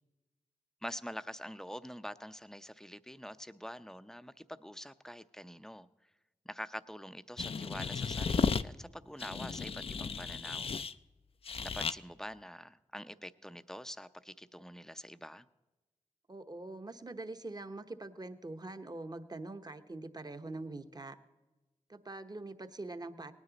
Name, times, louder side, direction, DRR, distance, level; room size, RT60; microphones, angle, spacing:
voice 1, 0.8-5.9 6.4-10.7 11.6-15.5, equal, 5° left, 0.6 m, -45 dB
sound 1, 7.4-8.6 9.2-10.9 11.5-12.0, left 5 dB, 45° left, 0.5 m, -34 dB
voice 2, 16.3-21.2 21.9-23.3, right 2 dB, 30° right, 1.0 m, -44 dB
18.5 x 9.8 x 4.0 m
cardioid pair, 45°, 13 cm